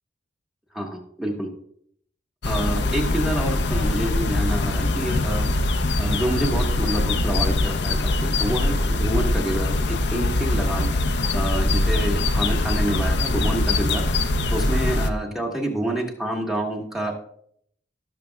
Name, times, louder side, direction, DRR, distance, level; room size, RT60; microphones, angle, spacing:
voice 1, 0.7-1.5 2.4-5.5 6.0-17.1, right 1 dB, ahead, -1 dB, 1.4 m, -28 dB
sound 1, 2.4-15.1, left 2 dB, 60° left, 0.7 m, -22 dB
17.0 x 6.7 x 2.3 m, 0.66 s
head